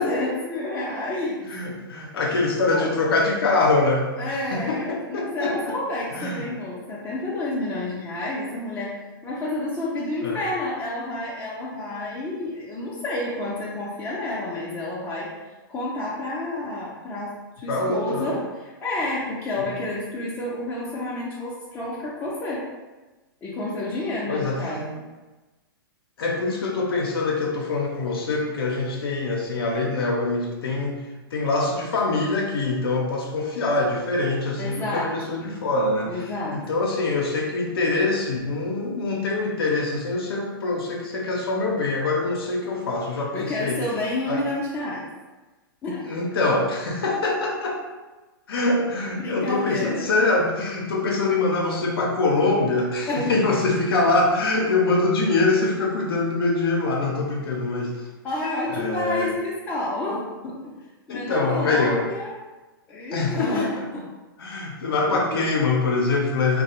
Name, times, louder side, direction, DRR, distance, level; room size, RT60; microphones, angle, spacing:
voice 1, 0.0-1.4 2.2-2.9 4.2-8.9 9.2-15.3 15.7-22.6 23.4-25.0 34.6-35.5 36.0-36.8 43.3-45.1 45.8-46.0 49.1-50.1 53.1-53.4 58.2-60.7 61.1-62.4 62.9-64.0 65.1-65.4, left 2 dB, 15° left, -8 dB, 0.4 m, -30 dB
voice 2, 1.4-5.7 6.1-6.5 10.2-10.4 17.7-18.4 24.3-24.8 26.2-31.0 31.3-43.8 44.3-44.4 46.0-47.8 48.5-58.0 58.7-59.3 61.1-62.0 63.1-63.7 64.4-66.6, left 3 dB, 80° left, -1 dB, 0.5 m, -24 dB
2.3 x 2.0 x 2.8 m, 1.2 s
hypercardioid pair, 130°, 12 cm